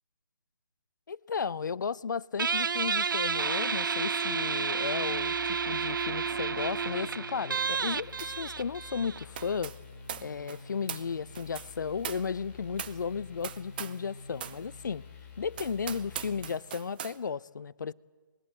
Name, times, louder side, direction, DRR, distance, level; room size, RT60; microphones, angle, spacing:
voice 1, 1.1-9.7 10.1-15.0 15.4-17.9, left 6 dB, 60° left, 0.6 m, -34 dB
Guitar, 2.4-9.6, right 5 dB, 70° right, 0.6 m, -31 dB
sound 1, 5.1-16.5, left 5 dB, 35° left, 6.2 m, -49 dB
sound 2, 8.2-8.5 8.7-14.1 14.4-14.6 15.1-15.2 15.5-17.2, right 9 dB, 25° right, 0.8 m, -42 dB
23.5 x 20.5 x 7.7 m
hypercardioid pair, 160°, 11 cm